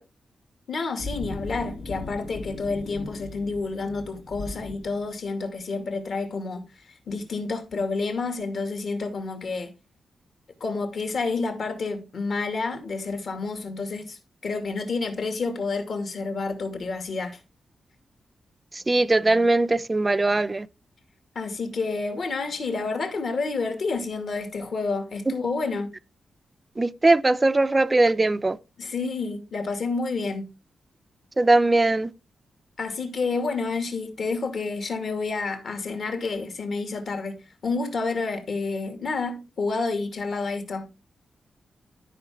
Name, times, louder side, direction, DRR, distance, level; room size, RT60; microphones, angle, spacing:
voice 1, 0.7-6.6 7.1-9.7 10.6-17.4 21.3-25.9 28.8-30.5 32.8-40.9, left 4 dB, 50° left, 2.3 m, -29 dB
sound 1, 1.0-5.4, left 2 dB, 75° left, 2.8 m, -38 dB
voice 2, 18.9-20.7 26.8-28.6 31.4-32.1, right 2 dB, 15° right, 0.5 m, -20 dB
12.5 x 5.8 x 3.7 m
wide cardioid pair, 175°, 0 cm